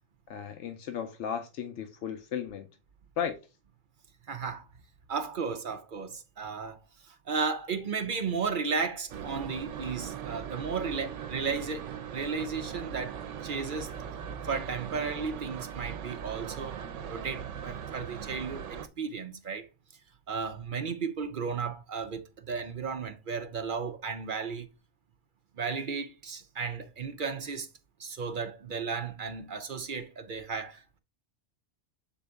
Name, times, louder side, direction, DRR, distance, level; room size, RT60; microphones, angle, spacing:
voice 1, 0.3-2.7 3.2-3.4, left 8 dB, 80° left, 0.9 m, -35 dB
voice 2, 4.3-4.7 5.1-13.9 14.4-16.8 17.1-19.7 20.3-24.7 25.6-27.7 28.0-31.0, right 5 dB, 50° right, 0.7 m, -34 dB
sound 1, 9.1-18.9, right 8 dB, 85° right, 1.0 m, -39 dB
7.1 x 4.0 x 3.4 m
omnidirectional pair, 1.2 m